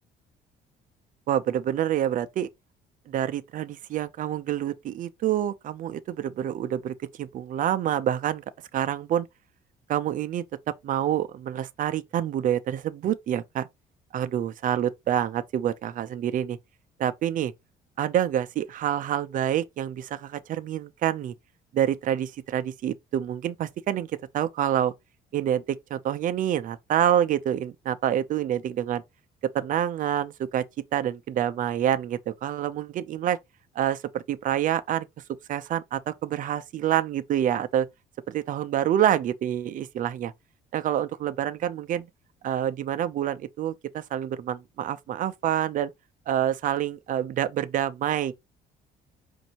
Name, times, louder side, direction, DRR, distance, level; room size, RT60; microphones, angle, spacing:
voice 1, 1.3-2.5 3.1-8.4 8.7-9.3 9.9-10.4 10.8-13.7 14.1-16.6 17.0-17.5 18.0-21.3 21.7-24.9 25.3-29.0 29.5-30.6 30.9-33.4 33.8-35.1 35.5-37.9 38.3-40.3 40.7-42.1 42.4-45.9 46.3-48.3, right 10 dB, 50° right, 0.5 m, -27 dB
5.3 x 2.6 x 2.8 m
cardioid pair, 110°, 17 cm